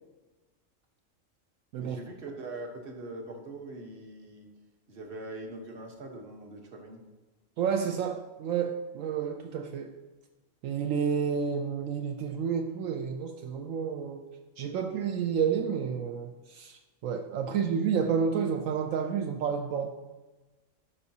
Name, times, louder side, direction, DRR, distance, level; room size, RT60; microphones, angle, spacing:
voice 1, 1.8-4.5 4.9-7.0, right 2 dB, 45° right, 2 dB, 1.3 m, -42 dB
voice 2, 7.6-10.0 10.6-14.3 14.6-19.9, right 7 dB, 80° right, 4 dB, 1.0 m, -30 dB
14.0 x 5.5 x 2.8 m, 1.2 s
omnidirectional pair, 1.4 m